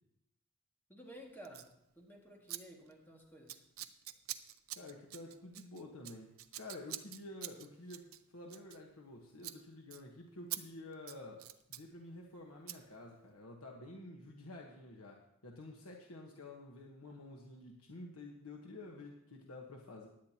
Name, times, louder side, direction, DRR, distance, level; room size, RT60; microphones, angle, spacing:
voice 1, 0.9-1.7 1.9-3.7, right 1 dB, 10° left, -1 dB, 2.0 m, -53 dB
Scissors, 1.4-1.7 2.5-2.6 2.9-3.1 3.5-9.1 9.4-9.6 9.9-10.0 10.5-10.6 10.9-11.9 12.7-12.8, right 13 dB, 70° right, 0.6 m, -46 dB
voice 2, 4.7-20.1, left 2 dB, 80° left, 0 dB, 1.3 m, -50 dB
16.5 x 10.5 x 2.9 m, 0.76 s
head